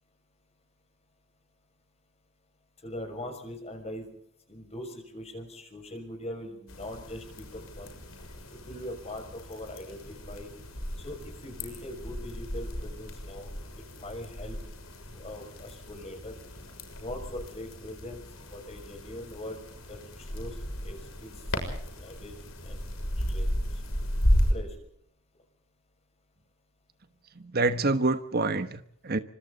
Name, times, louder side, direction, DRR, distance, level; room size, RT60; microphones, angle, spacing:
voice 1, 2.8-4.1 4.5-7.9 8.2-10.5 11.0-13.5 13.9-14.6 15.1-16.4 17.0-19.6 19.9-20.6 20.8-21.5 21.9-22.4 22.6-23.8 24.3-24.8, left 1 dB, 30° left, 6.5 m, -42 dB
sound 1, 6.7-24.5, equal, 90° left, 6.5 m, -34 dB
voice 2, 27.4-29.2, right 3 dB, 50° right, 1.2 m, -27 dB
29.0 x 25.5 x 4.1 m
head